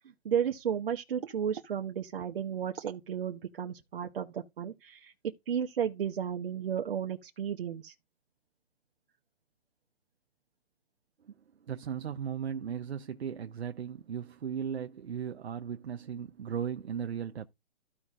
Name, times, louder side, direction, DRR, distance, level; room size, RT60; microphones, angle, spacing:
voice 1, 0.2-5.1 5.5-7.9, right 8 dB, 55° right, 1.0 m, -33 dB
voice 2, 11.7-17.5, right 8 dB, 80° right, 0.8 m, -36 dB
14.0 x 5.4 x 2.5 m
hypercardioid pair, 155°, 32 cm